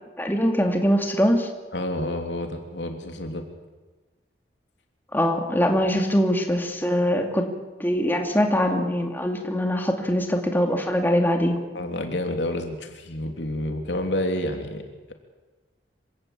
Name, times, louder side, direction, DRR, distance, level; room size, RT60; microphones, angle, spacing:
voice 1, 0.2-1.5 5.1-7.5 7.8-11.6, equal, 10° left, 3 dB, 2.6 m, -22 dB
voice 2, 1.7-3.4 11.7-14.8, left 1 dB, 85° left, 4 dB, 3.2 m, -29 dB
26.5 x 17.0 x 8.5 m, 1.3 s
head